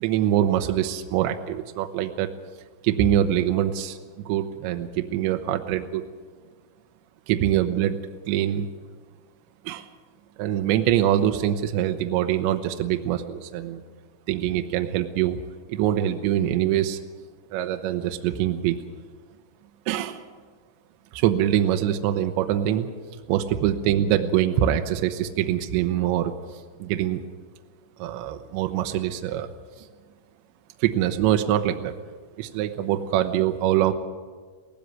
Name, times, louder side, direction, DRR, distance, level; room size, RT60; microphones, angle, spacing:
voice 1, 0.0-2.3 2.8-6.0 7.3-8.0 8.3-8.7 9.6-9.9 10.4-13.8 14.3-15.4 15.7-17.0 17.5-18.8 19.9-20.2 21.1-22.9 23.3-27.2 28.0-29.5 29.8-29.9 30.8-32.0 32.4-33.9, right 11 dB, 80° right, 6 dB, 2.8 m, -24 dB
18.5 x 15.5 x 9.3 m, 1.5 s
omnidirectional pair, 5.9 m